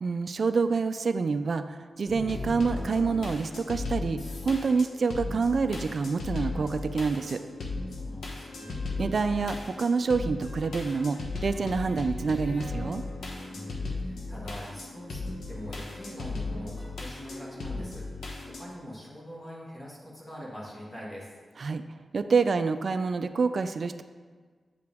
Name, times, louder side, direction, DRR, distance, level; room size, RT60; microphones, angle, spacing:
voice 1, 0.0-7.4 9.0-13.0 21.6-21.8 22.1-24.0, right 4 dB, 55° right, 10 dB, 0.3 m, -27 dB
sound 1, 2.1-18.6, left 3 dB, 80° left, 0.9 m, -36 dB
voice 2, 7.9-8.9 13.5-21.3, equal, 20° left, -5 dB, 1.4 m, -43 dB
8.2 x 4.9 x 3.5 m, 1.5 s
wide cardioid pair, 120°, 0 cm